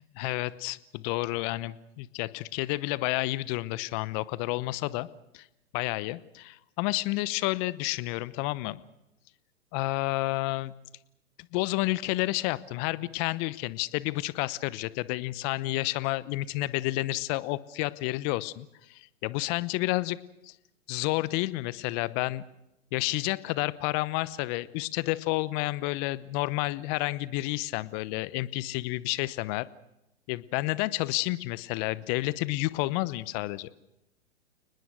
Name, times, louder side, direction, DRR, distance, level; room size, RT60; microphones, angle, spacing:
voice 1, 0.2-5.1 5.3-5.4 5.7-8.8 9.7-10.7 11.5-20.2 20.4-20.5 20.9-22.4 22.9-29.7 30.3-33.7, left 19 dB, 35° left, 18 dB, 0.9 m, -30 dB
30.0 x 20.0 x 6.3 m, 0.89 s
hypercardioid pair, 115°, 39 cm